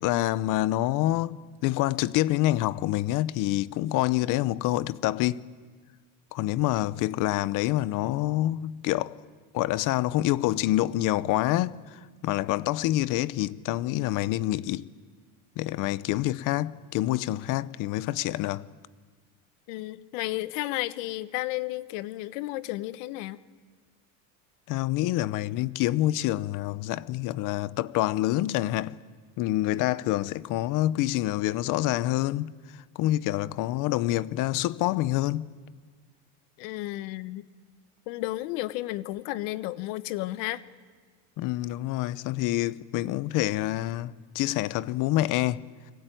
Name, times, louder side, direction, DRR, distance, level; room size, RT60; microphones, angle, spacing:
voice 1, 0.0-5.4 6.3-9.1 9.5-14.9 15.6-18.7 24.7-29.0 29.4-35.6 41.4-45.6, left 15 dB, 55° left, 0.9 m, -27 dB
voice 2, 19.7-23.4 36.6-37.5 38.1-40.6, left 17 dB, 80° left, 1.3 m, -33 dB
30.0 x 21.5 x 9.2 m
cardioid pair, 145°, 38 cm